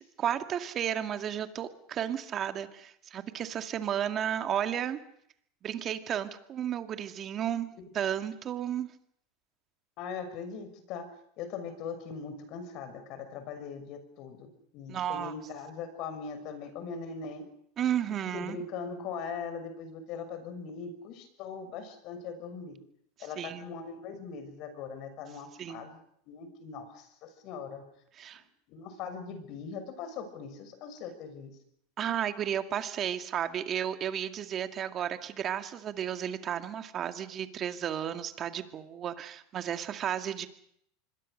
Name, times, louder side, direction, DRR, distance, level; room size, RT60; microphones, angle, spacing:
voice 1, 0.0-5.0 5.6-8.9 14.9-15.3 17.8-18.6 23.4-23.7 25.6-25.9 28.2-28.4 32.0-40.5, right 9 dB, 35° right, 8 dB, 2.2 m, -33 dB
voice 2, 10.0-11.1 11.4-17.4 18.3-22.8 23.2-26.0 26.3-27.8 28.7-31.5, left 5 dB, 50° left, 9 dB, 6.1 m, -40 dB
25.5 x 22.0 x 6.6 m, 0.70 s
supercardioid pair, 125°, 0 cm